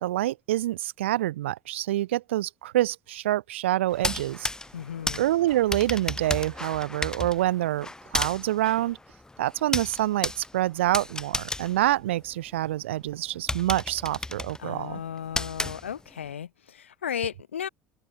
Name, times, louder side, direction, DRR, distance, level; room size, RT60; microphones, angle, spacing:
voice 1, 0.0-4.5 5.2-9.0 9.4-15.0, right 14 dB, 80° right, 0.6 m, -26 dB
sound 1, 3.9-12.7 13.1-13.2 13.5-16.3, left 2 dB, 10° left, 1.6 m, -33 dB
voice 2, 4.7-5.3 14.6-17.7, left 8 dB, 90° left, 2.9 m, -35 dB
open air
hypercardioid pair, 65°, 6 cm